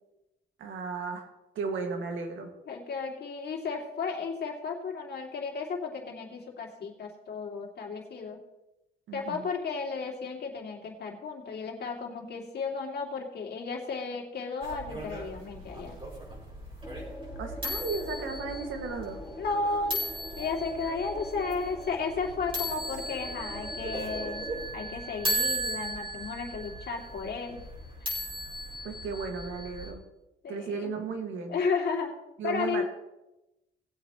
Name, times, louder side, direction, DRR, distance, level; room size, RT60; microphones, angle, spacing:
voice 1, 0.6-1.3 1.6-2.5 9.1-9.4 17.4-19.2 28.8-30.0 30.5-31.6 32.4-32.8, right 4 dB, 75° right, 4 dB, 2.0 m, -35 dB
voice 2, 2.7-8.4 9.1-16.0 19.4-20.0 20.4-24.4 24.7-27.6 30.4-30.9 31.5-32.1 32.4-32.8, left 4 dB, 55° left, 0 dB, 2.7 m, -33 dB
sound 1, 14.6-29.9, equal, 25° right, 4.2 m, -37 dB
sound 2, 16.8-24.7, equal, 5° left, 2.2 m, -44 dB
18.5 x 8.2 x 3.1 m, 0.96 s
cardioid pair, 90°, 20 cm